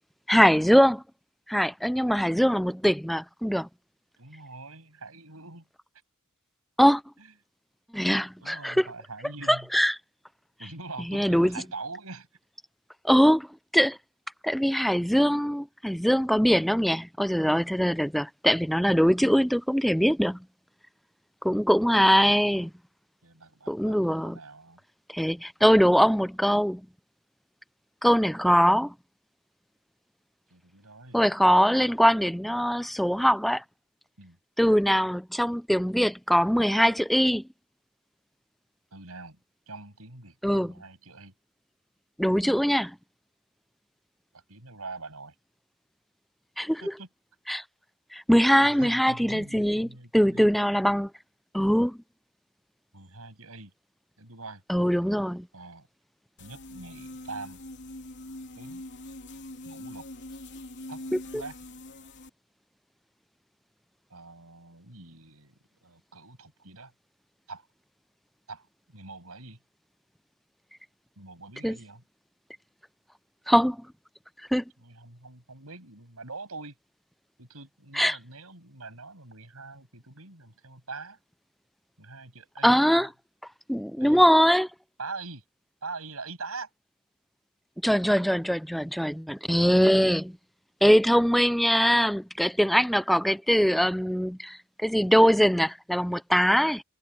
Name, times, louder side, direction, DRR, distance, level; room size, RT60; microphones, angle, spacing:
voice 1, 0.3-1.0 1.5-3.7 6.8-7.0 7.9-8.9 9.5-10.0 11.1-11.5 13.0-13.5 13.7-14.0 14.4-20.4 21.4-22.7 23.7-24.4 25.1-26.8 28.0-28.9 31.1-33.6 34.6-37.4 40.4-40.7 42.2-43.0 46.6-46.9 47.5-47.6 48.1-49.9 50.1-51.1 51.5-52.0 54.7-55.5 61.1-61.2 71.6-71.8 73.5-73.8 74.5-74.6 77.9-78.2 82.6-83.1 83.7-84.7 87.8-90.4 90.8-96.8, equal, ahead, 0.3 m, -22 dB
voice 2, 4.2-5.7 7.2-7.3 8.4-9.7 10.6-12.3 23.2-24.8 30.5-31.2 34.2-34.4 38.9-39.4 39.7-41.3 44.3-45.3 46.8-47.1 48.6-50.5 52.9-53.7 54.2-54.6 55.5-55.9 56.4-57.6 58.6-58.9 59.6-60.0 60.9-61.0 61.3-61.6 64.1-65.5 65.8-66.9 67.5-67.7 68.5-69.6 71.2-72.0 74.8-76.7 77.4-81.2 82.0-83.1 84.0-84.3 85.0-85.4 85.8-86.7, right 3 dB, 75° right, 7.1 m, -43 dB
sound 1, 56.4-62.3, left 1 dB, 55° left, 3.3 m, -43 dB
head